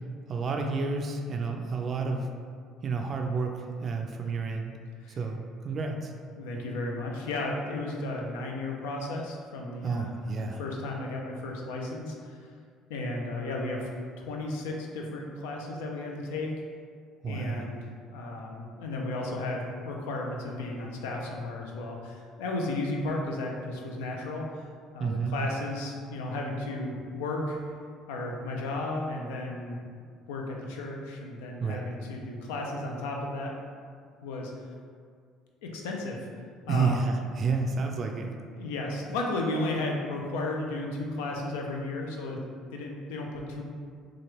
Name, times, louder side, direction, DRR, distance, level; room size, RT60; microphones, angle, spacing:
voice 1, 0.3-2.3 2.8-4.7 5.2-6.1 9.8-10.6 17.2-17.7 25.0-25.3 31.6-31.8 36.7-38.3, right 4 dB, 45° right, 3 dB, 0.3 m, -30 dB
voice 2, 6.4-12.5 12.9-13.9 14.2-16.5 17.3-17.8 18.1-24.4 24.9-27.7 28.1-29.8 30.3-33.5 34.2-34.5 35.6-36.2 36.7-37.1 38.6-42.4 42.7-43.6, left 2 dB, 85° left, 0 dB, 0.4 m, -34 dB
3.0 x 2.4 x 2.9 m, 2.1 s
supercardioid pair, 70°, 0 cm